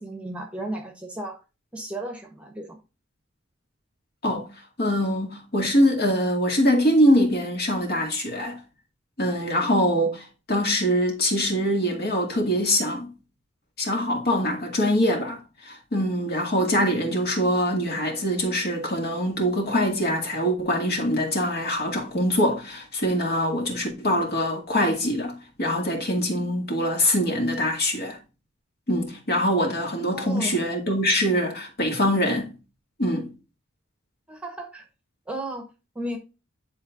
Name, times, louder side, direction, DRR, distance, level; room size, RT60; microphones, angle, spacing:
voice 1, 0.0-1.4 1.7-2.8 30.1-30.6 34.3-34.8 35.3-35.7 35.9-36.2, right 1 dB, 5° right, 1.2 m, -34 dB
voice 2, 4.8-8.6 9.2-13.1 13.8-28.2 28.9-32.5 33.0-33.3, equal, 50° left, 2.2 m, -23 dB
10.5 x 4.4 x 2.6 m
head